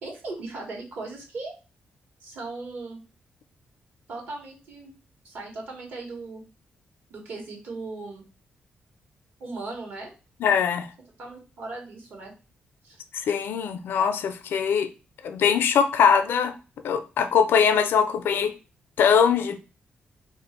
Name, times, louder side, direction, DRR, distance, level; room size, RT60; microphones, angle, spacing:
voice 1, 0.0-1.5 2.2-3.0 4.1-4.9 5.2-6.4 7.1-8.3 9.4-10.1 11.2-12.3 12.8-13.0, right 3 dB, 65° right, 1.3 m, -37 dB
voice 2, 10.4-10.9 13.1-14.9 15.2-16.5 16.8-18.5 19.0-19.6, left 7 dB, 80° left, 0.4 m, -22 dB
2.6 x 2.4 x 4.1 m
wide cardioid pair, 130°, 4 cm